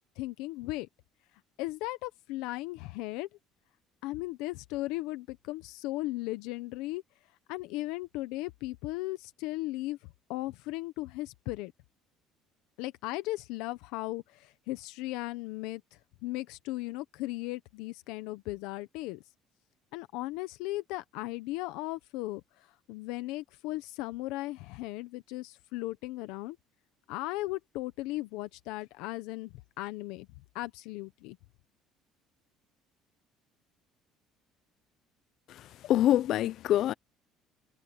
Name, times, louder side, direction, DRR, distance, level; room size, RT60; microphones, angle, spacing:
voice 1, 0.2-0.9 1.6-3.3 4.0-7.0 7.5-10.0 10.3-11.7 12.8-15.8 16.2-19.2 19.9-22.4 22.9-26.6 27.1-30.3 30.5-31.4, left 18 dB, 90° left, 0.9 m, -36 dB
voice 2, 35.5-36.9, left 12 dB, 60° left, 0.5 m, -26 dB
cardioid pair, 130°, 0 cm